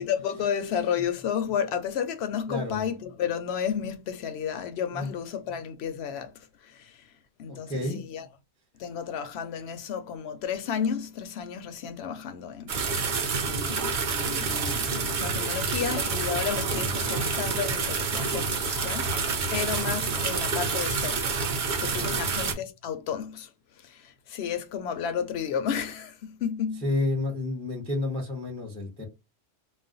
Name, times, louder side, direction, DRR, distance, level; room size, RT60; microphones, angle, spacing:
voice 1, 0.0-7.0 7.4-8.3 8.8-13.0 13.4-23.5 23.8-26.8, left 8 dB, 65° left, 0.7 m, -32 dB
voice 2, 2.5-2.8 4.9-5.1 7.5-8.0 16.7-16.9 22.0-22.4 26.8-29.1, left 2 dB, 5° left, 0.6 m, -31 dB
sound 1, 12.7-22.5, right 4 dB, 55° right, 0.6 m, -28 dB
2.4 x 2.1 x 3.8 m
omnidirectional pair, 1.3 m